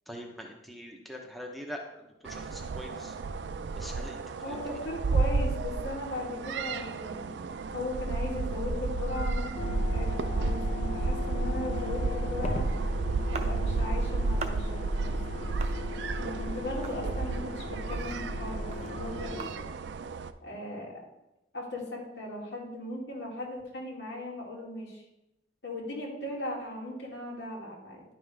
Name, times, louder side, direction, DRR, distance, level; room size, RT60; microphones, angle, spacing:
voice 1, 0.1-3.2 3.7-4.6, equal, ahead, 0 dB, 0.8 m, -43 dB
sound 1, 2.2-20.3, right 3 dB, 80° right, 0.4 m, -32 dB
voice 2, 4.4-7.3 7.7-12.7 13.3-15.6 16.2-19.6 20.4-21.0 21.5-25.0 25.6-28.0, left 1 dB, 85° left, -3 dB, 2.4 m, -38 dB
sound 2, 9.5-19.5, left 4 dB, 40° left, 0.7 m, -39 dB
sound 3, 13.3-14.0 14.4-14.9 15.6-16.3 16.8-17.5 17.8-19.9, right 3 dB, 40° right, 0.6 m, -42 dB
10.5 x 5.5 x 3.4 m, 0.91 s
head